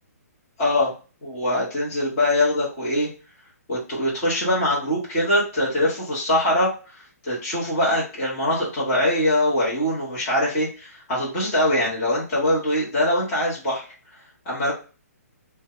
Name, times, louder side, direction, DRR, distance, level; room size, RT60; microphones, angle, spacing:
voice 1, 0.6-0.9 1.2-3.1 3.7-13.8 14.4-14.7, left 1 dB, 15° left, -7 dB, 1.1 m, -23 dB
4.4 x 2.2 x 3.7 m, 0.35 s
hypercardioid pair, 175°, 9 cm